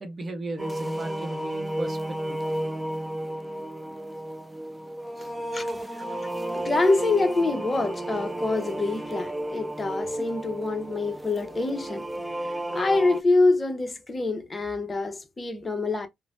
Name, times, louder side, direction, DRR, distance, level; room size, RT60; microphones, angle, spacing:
voice 1, 0.0-2.4 2.7-2.8 5.2-5.7, right 2 dB, 30° right, 0.8 m, -37 dB
sound 1, 0.6-13.2, right 1 dB, 10° right, 0.4 m, -32 dB
voice 2, 6.5-12.1 12.7-16.1, left 3 dB, 25° left, 0.8 m, -25 dB
3.1 x 2.1 x 2.5 m
cardioid pair, 90°, 0 cm